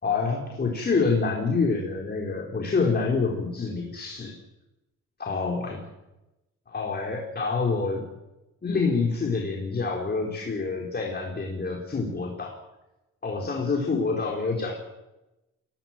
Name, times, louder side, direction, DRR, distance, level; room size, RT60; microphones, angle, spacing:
voice 1, 0.0-4.4 5.2-5.9 6.7-8.1 8.6-12.6 13.2-14.7, left 4 dB, 35° left, 0 dB, 4.7 m, -27 dB
23.5 x 17.5 x 7.6 m, 0.97 s
cardioid pair, 90°, 30 cm